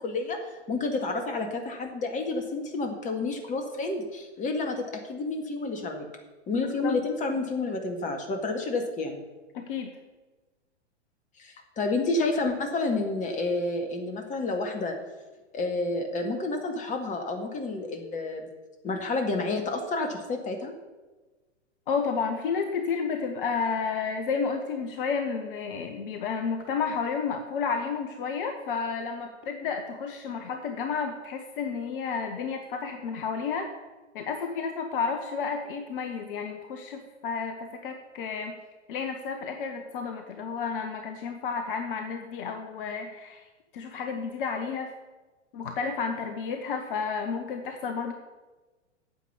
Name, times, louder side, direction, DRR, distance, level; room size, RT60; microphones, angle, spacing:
voice 1, 0.0-6.1 6.5-9.2 11.4-15.0 15.5-18.5 18.8-20.7, left 3 dB, 20° left, 4 dB, 2.0 m, -30 dB
voice 2, 6.5-6.9 9.5-9.9 21.9-33.7 34.1-38.6 38.9-43.5 43.7-44.9 45.5-48.1, left 5 dB, 45° left, 5 dB, 1.2 m, -31 dB
9.4 x 7.6 x 8.4 m, 1.2 s
figure-of-eight pair, 105°, 35 cm